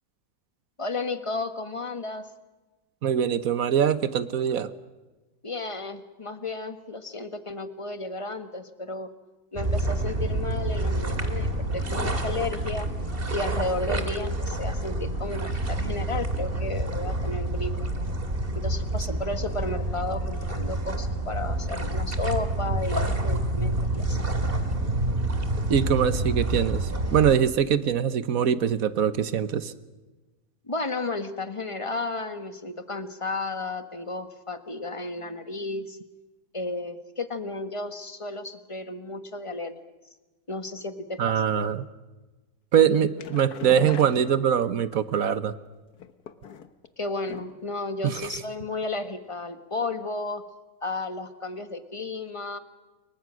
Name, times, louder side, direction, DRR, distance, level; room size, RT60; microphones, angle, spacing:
voice 1, 0.8-2.3 5.4-9.1 9.5-12.9 13.3-17.9 18.5-24.2 30.7-36.0 36.5-39.8 40.5-41.4 47.0-50.4 50.8-52.6, left 3 dB, 20° left, 9 dB, 1.4 m, -33 dB
voice 2, 3.0-4.7 25.7-29.7 41.2-41.8 42.7-45.5 48.0-48.3, right 8 dB, 60° right, 13 dB, 1.4 m, -23 dB
sound 1, 9.5-27.3, right 1 dB, 35° right, 2.4 m, -28 dB
sound 2, 42.9-45.0 45.9-46.9 47.3-47.7 48.0-48.1 48.4-48.5, left 7 dB, 70° left, 1.6 m, -39 dB
29.0 x 23.5 x 6.4 m, 1.2 s
omnidirectional pair, 1.7 m